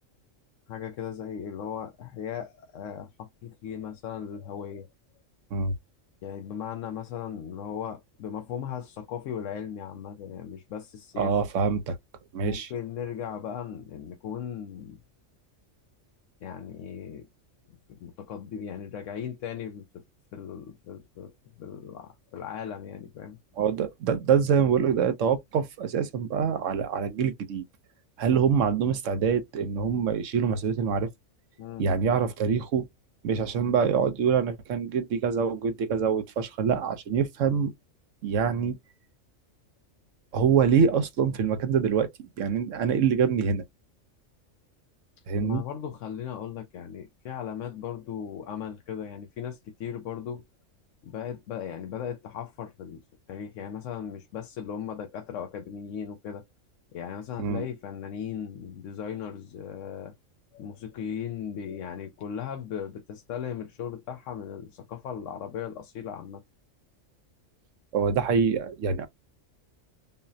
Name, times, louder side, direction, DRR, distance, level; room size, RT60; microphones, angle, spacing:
voice 1, 0.7-4.9 6.2-11.3 12.4-15.0 16.4-17.3 17.7-20.0 20.3-23.4 31.6-31.9 45.4-50.4 51.0-53.0 53.3-56.4 56.9-60.1 60.5-66.4, left 8 dB, 75° left, 1.0 m, -37 dB
voice 2, 11.2-12.0 12.3-12.7 23.6-27.6 28.2-31.1 31.8-32.9 33.2-37.7 38.2-38.8 40.3-43.6 45.3-45.6 57.4-57.6 67.9-69.1, right 6 dB, 75° right, 1.0 m, -25 dB
5.5 x 2.0 x 2.6 m
omnidirectional pair, 1.4 m